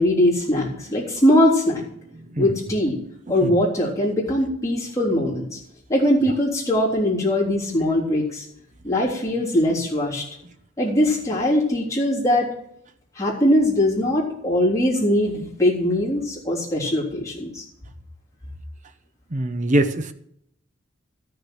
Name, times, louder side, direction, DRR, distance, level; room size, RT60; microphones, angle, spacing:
voice 1, 0.0-1.8 2.4-3.0 3.3-5.6 5.9-8.5 8.8-10.2 10.8-12.5 13.2-17.6, left 1 dB, 15° left, -6 dB, 3.5 m, -21 dB
voice 2, 19.3-20.1, right 1 dB, 35° right, 9 dB, 0.8 m, -22 dB
13.0 x 6.8 x 6.4 m, 0.73 s
head